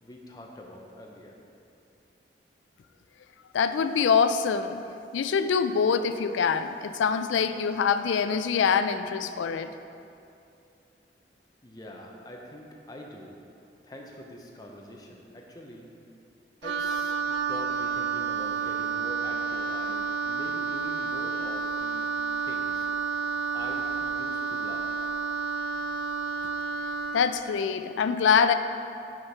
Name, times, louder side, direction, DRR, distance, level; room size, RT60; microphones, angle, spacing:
voice 1, 0.0-1.4 11.6-13.3 13.8-15.9 16.6-22.1 22.4-22.9 23.5-24.9, left 1 dB, 20° left, 0 dB, 0.7 m, -44 dB
voice 2, 3.5-4.8 5.1-9.7 27.1-28.5, left 6 dB, 90° left, 11 dB, 0.4 m, -24 dB
Wind instrument woodwind instrument, 16.6-27.3, right 5 dB, 75° right, 0.3 m, -30 dB
6.5 x 5.8 x 4.6 m, 2.6 s
head